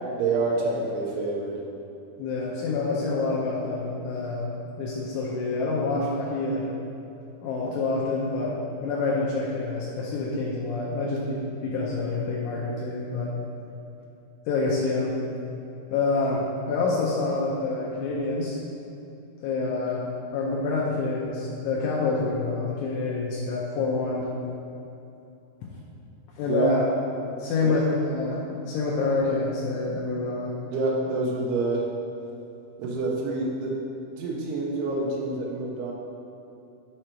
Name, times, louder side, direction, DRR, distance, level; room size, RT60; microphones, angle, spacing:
voice 1, 0.2-1.6 26.5-26.8 27.6-27.8 30.7-31.9 32.8-33.8 34.2-35.9, right 3 dB, 85° right, -3 dB, 2.2 m, -27 dB
voice 2, 2.2-4.5 4.8-6.7 7.4-13.3 14.5-15.2 15.9-18.6 19.4-24.3 26.4-26.9 27.4-27.9 28.1-30.5, left 3 dB, 80° left, -4 dB, 3.1 m, -27 dB
7.7 x 5.0 x 4.4 m, 2.8 s
omnidirectional pair, 5.6 m